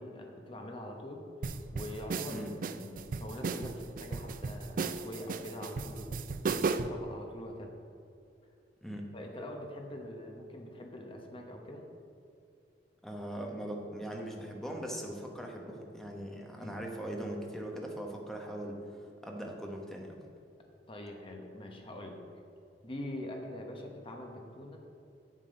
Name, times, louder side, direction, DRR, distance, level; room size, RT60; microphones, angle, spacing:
voice 1, 0.0-6.2 6.7-7.7 9.1-11.8 16.5-16.8 20.9-22.2 22.8-24.8, left 1 dB, 30° left, 2 dB, 1.0 m, -44 dB
sound 1, 1.4-7.0, right 4 dB, 50° right, 0.4 m, -35 dB
voice 2, 13.0-18.8 19.2-20.2, right 1 dB, ahead, 0 dB, 1.1 m, -40 dB
7.6 x 7.6 x 5.2 m, 2.6 s
head